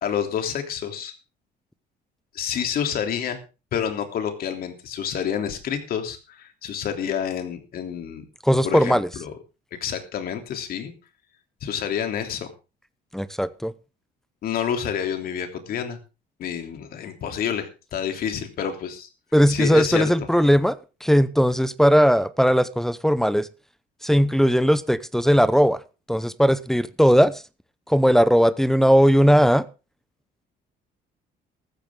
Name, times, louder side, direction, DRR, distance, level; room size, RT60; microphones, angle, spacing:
voice 1, 0.0-1.2 2.3-3.4 3.7-8.2 8.6-9.3 9.8-10.9 11.6-12.5 14.4-16.0 16.4-19.1 19.5-20.0, left 8 dB, 60° left, 3.2 m, -28 dB
voice 2, 8.4-9.1 13.1-13.7 19.3-23.5 24.0-25.8 26.1-27.4 27.9-29.7, equal, ahead, 0.8 m, -18 dB
15.0 x 14.0 x 3.8 m
cardioid pair, 110°, 17 cm